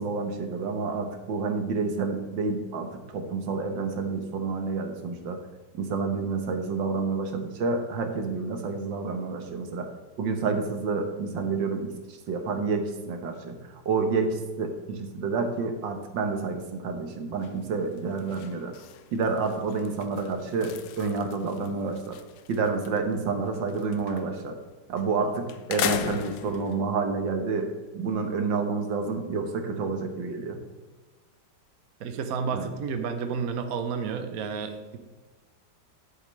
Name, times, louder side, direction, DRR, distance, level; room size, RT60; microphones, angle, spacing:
voice 1, 0.0-5.4 5.7-9.9 10.2-18.7 19.1-22.2 22.5-24.6 24.9-30.6 32.5-32.7, right 4 dB, 80° right, 5 dB, 1.9 m, -29 dB
sound 1, 17.4-17.7 18.0-23.0 23.3-24.5 25.0-25.1 25.5-26.8, left 9 dB, 75° left, 1.3 m, -36 dB
voice 2, 32.0-35.0, right 6 dB, 55° right, 7 dB, 1.2 m, -31 dB
11.0 x 8.6 x 3.2 m, 1.3 s
omnidirectional pair, 2.0 m